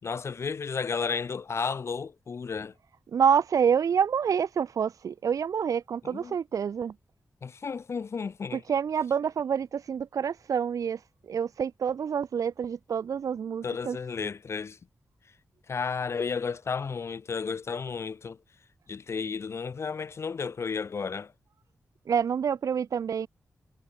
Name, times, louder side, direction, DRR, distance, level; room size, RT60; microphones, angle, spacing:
voice 1, 0.0-2.7 6.0-6.4 7.4-8.6 13.6-14.8 15.7-18.4 18.9-21.3, left 5 dB, 50° left, 5.9 m, -33 dB
voice 2, 3.1-6.9 8.5-14.0 22.1-23.3, right 7 dB, 85° right, 0.8 m, -27 dB
wide cardioid pair, 180°, 6 cm